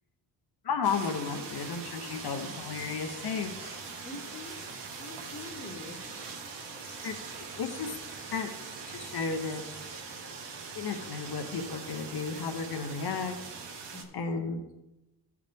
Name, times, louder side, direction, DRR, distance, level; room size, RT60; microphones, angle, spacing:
voice 1, 0.6-3.8 7.0-7.2 7.6-7.9 8.3-8.5 8.9-9.6 10.7-13.4 14.1-14.6, left 5 dB, 65° left, 5 dB, 0.9 m, -33 dB
sound 1, 0.8-13.4, left 2 dB, 45° left, 2.4 m, -55 dB
sound 2, 0.8-14.0, right 5 dB, 75° right, 1.3 m, -42 dB
voice 2, 2.1-2.6 4.0-4.7 5.0-6.1 7.0-7.3 13.9-14.2, left 2 dB, 25° left, 2 dB, 1.1 m, -45 dB
14.5 x 4.9 x 3.5 m, 0.96 s
wide cardioid pair, 140°, 41 cm